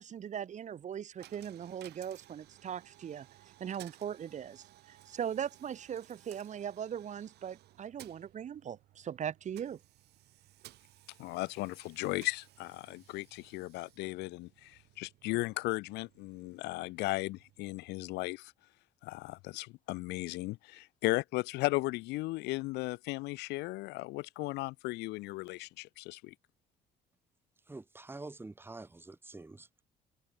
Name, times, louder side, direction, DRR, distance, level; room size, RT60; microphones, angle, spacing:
voice 1, 0.0-3.3 3.6-9.8, right 9 dB, 45° right, 1.4 m, -39 dB
Coin (dropping), 1.2-18.1, right 15 dB, 75° right, 5.9 m, -59 dB
voice 2, 11.2-18.5 19.0-26.3, left 21 dB, 90° left, 0.7 m, -36 dB
voice 3, 27.7-29.7, right 2 dB, 15° right, 1.9 m, -46 dB
open air
cardioid pair, 110°, 17 cm